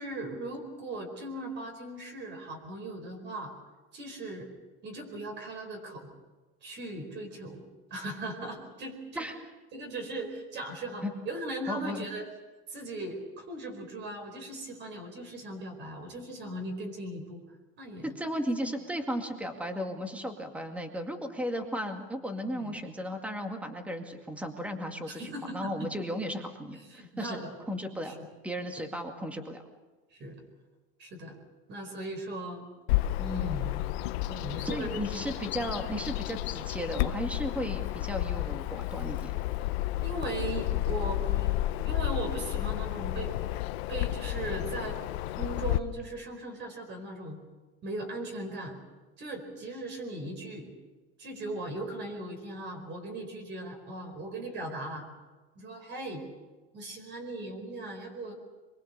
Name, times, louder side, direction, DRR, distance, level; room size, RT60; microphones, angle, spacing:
voice 1, 0.0-3.5 3.9-4.5 4.8-6.1 6.6-7.6 7.9-9.3 9.7-12.3 12.7-17.4 17.8-18.1 22.5-22.7 25.1-25.9 26.8-27.5 28.0-28.1 30.1-30.3 31.0-31.4 31.7-32.6 33.2-33.8 34.2-35.0 35.3-35.4 40.0-43.6 43.9-45.0 45.4-47.4 47.8-48.8 49.2-50.7 51.2-55.1 55.5-56.2 56.7-58.3, right 2 dB, 35° right, 4 dB, 4.8 m, -38 dB
voice 2, 11.7-12.0 18.0-27.4 27.7-28.1 28.4-29.6 34.6-39.4, equal, 5° right, 4 dB, 2.2 m, -35 dB
Bird vocalization bird call bird song, 32.9-45.8, left 15 dB, 90° left, 1.0 m, -31 dB
24.5 x 23.0 x 6.8 m, 1.2 s
cardioid pair, 150°, 31 cm